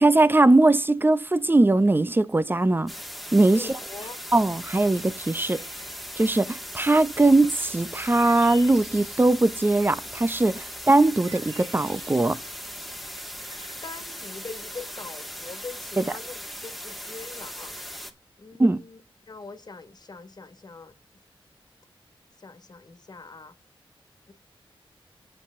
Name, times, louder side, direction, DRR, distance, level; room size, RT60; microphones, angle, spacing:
voice 1, 0.0-2.9 3.3-3.7 4.3-5.6 6.2-12.4 16.0-16.1 18.6-18.8, right 2 dB, 20° right, 0.8 m, -20 dB
sound 1, 2.9-18.1, equal, ahead, 2.2 m, -39 dB
voice 2, 3.5-4.2 13.8-17.8 18.4-20.9 22.4-23.6 24.3-24.4, left 4 dB, 45° left, 1.9 m, -42 dB
sound 2, 4.3-13.8, right 2 dB, 65° right, 2.1 m, -50 dB
8.2 x 7.8 x 3.7 m
cardioid pair, 65°, 9 cm